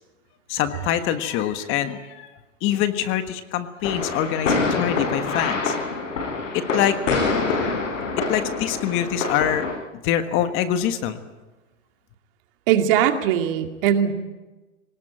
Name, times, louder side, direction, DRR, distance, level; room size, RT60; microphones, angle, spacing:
voice 1, 0.5-2.3 2.6-5.7 6.5-7.0 8.3-9.7 9.9-11.2, left 10 dB, 35° left, 9 dB, 1.5 m, -24 dB
sound 1, 3.8-9.7, left 4 dB, 80° left, 7.1 m, -25 dB
voice 2, 12.7-14.1, right 9 dB, 45° right, 5 dB, 2.4 m, -20 dB
22.0 x 19.5 x 8.8 m, 1.1 s
hypercardioid pair, 140°, 38 cm